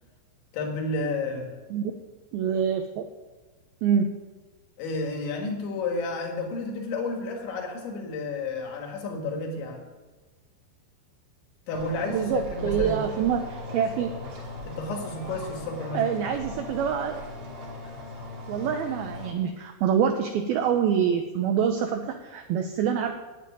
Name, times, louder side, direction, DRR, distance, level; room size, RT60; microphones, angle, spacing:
voice 1, 0.5-1.5 4.8-9.8 11.7-13.0 14.7-16.0, left 3 dB, 75° left, 2 dB, 4.4 m, -31 dB
voice 2, 2.3-3.0 3.8-4.2 12.1-14.1 15.9-17.2 18.5-23.1, right 8 dB, 85° right, 6 dB, 2.2 m, -26 dB
sound 1, 11.7-19.3, left 1 dB, 40° right, 3.3 m, -38 dB
9.6 x 8.9 x 9.3 m, 1.3 s
omnidirectional pair, 5.4 m